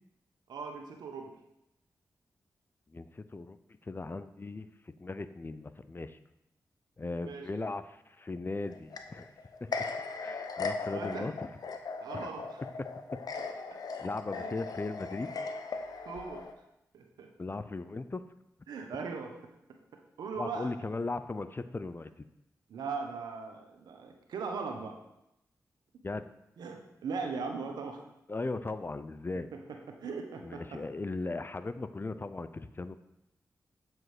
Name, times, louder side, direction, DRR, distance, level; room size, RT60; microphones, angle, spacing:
voice 1, 0.5-1.3 7.2-7.6 10.2-10.3 10.9-11.3 12.0-12.6 13.7-13.8 14.3-14.6 16.1-16.5 16.9-17.3 18.7-19.3 20.2-20.7 22.7-25.0 26.6-28.0 29.3-30.8, right 4 dB, 85° right, 3 dB, 1.0 m, -39 dB
voice 2, 2.9-3.6 3.8-4.7 5.0-6.2 7.0-9.3 9.6-9.7 10.2-11.3 12.1-12.3 14.0-15.3 17.4-18.2 20.4-22.1 26.0-26.3 28.3-29.5 30.4-32.9, left 3 dB, 30° left, 12 dB, 0.5 m, -37 dB
sound 1, 8.6-16.5, left 4 dB, 70° left, 0.7 m, -38 dB
7.6 x 5.0 x 4.9 m, 0.85 s
cardioid pair, 45°, 7 cm